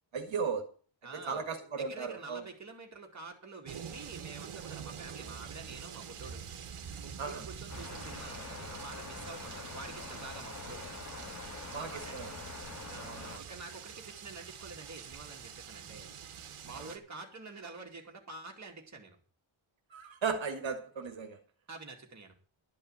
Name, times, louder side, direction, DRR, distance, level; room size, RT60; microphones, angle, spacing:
voice 1, 0.1-0.6 1.3-2.4 7.2-7.4 11.7-12.3 13.0-13.4 16.8-16.9 19.9-21.4, right 5 dB, 65° right, 6 dB, 1.6 m, -36 dB
voice 2, 1.0-1.4 1.7-6.4 7.0-10.8 11.8-12.3 12.9-13.1 13.4-16.1 16.6-19.2 21.7-22.4, right 3 dB, 35° right, 2 dB, 2.3 m, -48 dB
sound 1, 3.7-17.0, right 7 dB, 85° right, 1.3 m, -46 dB
sound 2, 7.7-13.4, left 3 dB, 35° left, 2.1 m, -45 dB
12.0 x 5.5 x 8.8 m, 0.43 s
wide cardioid pair, 155°, 49 cm